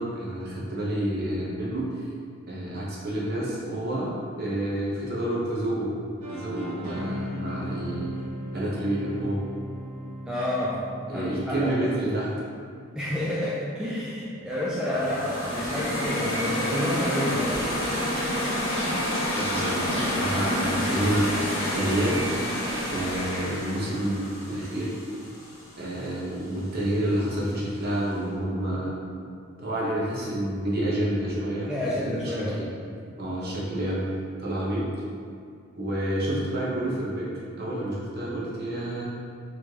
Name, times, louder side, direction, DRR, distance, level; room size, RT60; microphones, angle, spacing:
voice 1, 0.0-2.0 2.5-4.1 4.4-5.9 6.3-8.1 8.5-9.4 11.1-12.3 19.3-22.2 22.8-24.9 25.8-28.9 29.6-32.7 33.2-34.0 34.4-34.8 35.8-37.3 37.5-39.0, right 1 dB, 45° right, -6 dB, 0.8 m, -29 dB
sound 1, 6.2-12.1, equal, 85° right, 0.9 m, -37 dB
voice 2, 10.3-10.8 11.1-11.9 13.0-17.5 31.7-32.6, left 1 dB, 5° right, -8 dB, 0.3 m, -29 dB
sound 2, 14.8-25.9, equal, 65° left, 1.0 m, -29 dB
Fill (with liquid), 17.5-23.2, equal, 30° left, 0.9 m, -38 dB
4.2 x 3.2 x 2.8 m, 2.3 s
head